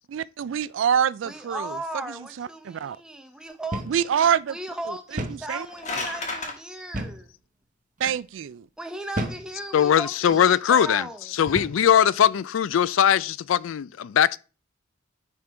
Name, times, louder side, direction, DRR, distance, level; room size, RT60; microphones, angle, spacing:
voice 1, 0.1-1.8 2.1-3.0 3.9-4.6 4.9-5.7 5.9-6.1 8.0-8.7, right 8 dB, 70° right, 0.3 m, -26 dB
voice 2, 1.2-4.1 4.5-7.3 8.8-11.3, right 1 dB, 5° right, 0.8 m, -36 dB
sound 1, 3.7-4.0 4.3-4.4 5.2-5.5 6.9-7.3 8.0-8.2 9.1-9.5 10.2-10.4 11.5-11.9, right 1 dB, 40° right, 1.0 m, -32 dB
sound 2, 5.4-6.5, left 3 dB, 35° left, 1.5 m, -32 dB
voice 3, 9.7-14.4, left 9 dB, 80° left, 0.3 m, -20 dB
9.8 x 3.7 x 4.4 m
head